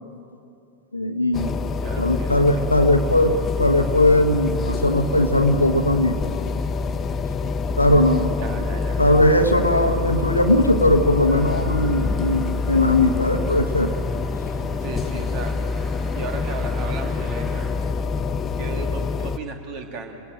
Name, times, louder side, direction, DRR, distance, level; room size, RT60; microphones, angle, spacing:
voice 1, 0.9-1.5 2.0-6.2 7.8-8.3 9.0-13.9, left 1 dB, 85° left, 5 dB, 1.3 m, -19 dB
sound 1, 1.3-19.4, left 4 dB, 25° left, 0.8 m, -26 dB
voice 2, 1.8-2.8 8.4-9.1 14.8-15.5 16.1-17.7 18.6-20.2, right 4 dB, 40° right, 4 dB, 2.8 m, -35 dB
Train, 11.3-17.7, equal, 15° right, 6.2 m, -45 dB
28.5 x 20.5 x 7.7 m, 2.6 s
figure-of-eight pair, 90°, 0 cm